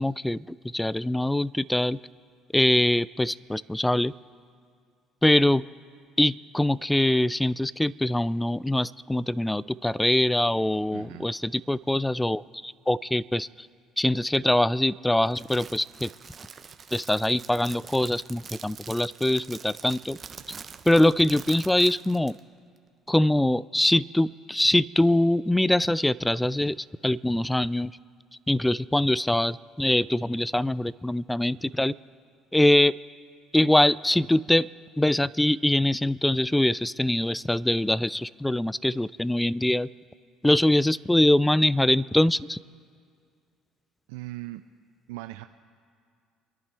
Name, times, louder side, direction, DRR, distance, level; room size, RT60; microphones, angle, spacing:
voice 1, 0.0-2.0 2.5-4.1 5.2-5.7 6.2-13.7 14.0-16.1 16.9-20.2 20.9-22.4 23.1-27.9 28.5-31.9 32.5-32.9 33.5-34.7 35.0-39.9 40.4-42.6, left 1 dB, 10° left, 20 dB, 0.4 m, -23 dB
voice 2, 10.9-11.3 44.1-44.6 45.1-45.5, right 18 dB, 80° right, 8 dB, 0.4 m, -38 dB
Crackle, 15.3-22.4, right 6 dB, 40° right, 0.9 m, -44 dB
28.5 x 11.0 x 3.4 m, 2.2 s
hypercardioid pair, 65°, 0 cm